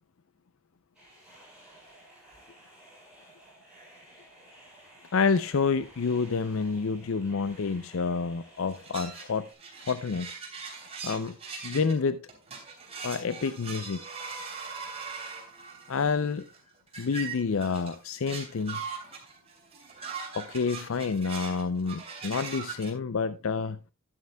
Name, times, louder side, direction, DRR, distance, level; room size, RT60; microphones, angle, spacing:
sound 1, 0.9-9.5, right 1 dB, 5° right, 6.8 m, -54 dB
voice 1, 5.1-9.5 9.9-10.3 11.0-11.3 11.6-12.2 13.0-14.0 15.9-16.4 17.0-18.8 20.3-23.8, left 5 dB, 65° left, 0.5 m, -28 dB
sound 2, 8.7-11.9 12.3-22.9, right 5 dB, 25° right, 3.2 m, -40 dB
13.0 x 11.0 x 2.3 m
head